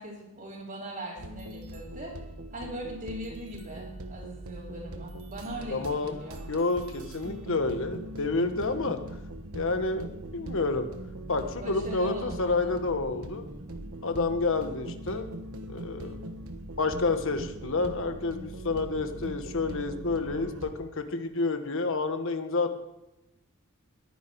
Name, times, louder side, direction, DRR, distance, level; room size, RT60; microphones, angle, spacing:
voice 1, 0.0-2.1 2.5-6.4 11.6-12.7, right 1 dB, 40° right, -8 dB, 4.4 m, -40 dB
sound 1, 1.2-20.7, right 1 dB, 70° right, 1.4 m, -41 dB
voice 2, 5.7-6.2 6.5-9.0 9.5-10.1 10.3-10.9 11.3-13.5 14.0-15.3 15.7-16.2 16.8-22.7, left 3 dB, 60° left, 8 dB, 1.3 m, -29 dB
21.5 x 10.0 x 4.7 m, 0.93 s
head